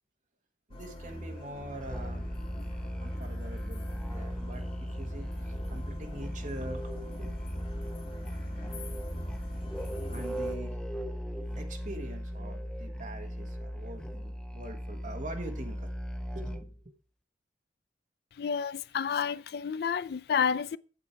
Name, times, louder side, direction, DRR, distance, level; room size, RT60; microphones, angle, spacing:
sound 1, 0.7-10.6, equal, 30° left, 1.5 m, -42 dB
voice 1, 0.7-2.3 3.0-7.4 10.1-10.8 11.5-15.9 16.3-16.7, right 1 dB, 45° right, 1.4 m, -44 dB
Musical instrument, 1.8-16.8, equal, 5° left, 0.5 m, -38 dB
voice 2, 18.4-20.8, left 7 dB, 60° left, 0.3 m, -30 dB
7.5 x 7.3 x 4.6 m
head